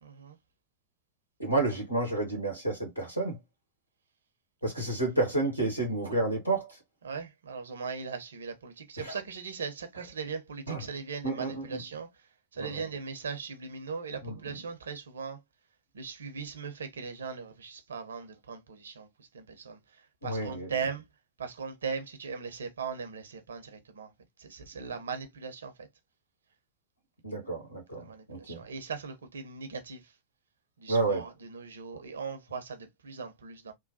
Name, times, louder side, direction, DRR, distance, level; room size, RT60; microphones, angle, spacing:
voice 1, 0.0-0.4 7.0-15.4 15.9-21.0 21.4-24.1 24.4-25.9 27.9-30.1 30.8-33.7, right 5 dB, 70° right, 0.6 m, -39 dB
voice 2, 1.4-3.4 4.6-6.8 9.0-9.2 10.7-10.8 11.2-11.8 12.6-12.8 14.2-14.4 20.2-20.7 27.2-28.6 30.9-31.2, right 2 dB, 90° left, 1.2 m, -30 dB
3.0 x 2.1 x 2.6 m
figure-of-eight pair, 90°, 0 cm